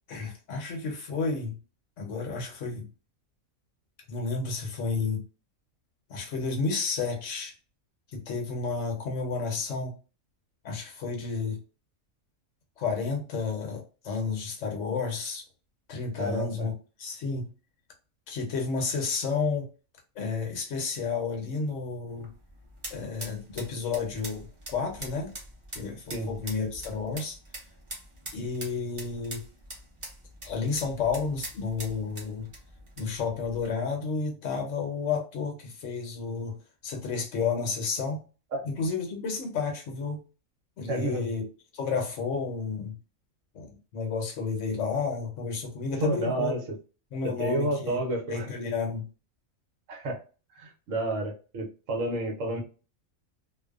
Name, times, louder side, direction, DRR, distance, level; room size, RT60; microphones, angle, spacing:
voice 1, 0.1-1.6 2.0-2.9 4.1-5.2 6.1-7.5 8.1-9.9 10.6-11.6 12.8-15.4 15.9-16.7 17.0-17.5 18.3-19.7 20.2-22.3 22.9-25.3 25.7-27.4 28.3-29.4 30.4-32.5 33.0-36.6 36.8-38.2 38.6-40.2 40.8-41.4 41.7-43.0 43.5-46.6 47.1-48.0 48.3-49.1, left 4 dB, 70° left, 2 dB, 1.0 m, -31 dB
voice 2, 16.2-16.7 26.1-26.3 38.5-38.6 40.9-41.3 46.0-46.6 47.2-48.5 49.9-50.2 50.6-52.6, right 1 dB, 70° right, 2 dB, 1.1 m, -30 dB
sound 1, 22.1-33.7, right 1 dB, 30° right, 0.6 m, -44 dB
2.5 x 2.1 x 2.3 m, 0.34 s
omnidirectional pair, 1.4 m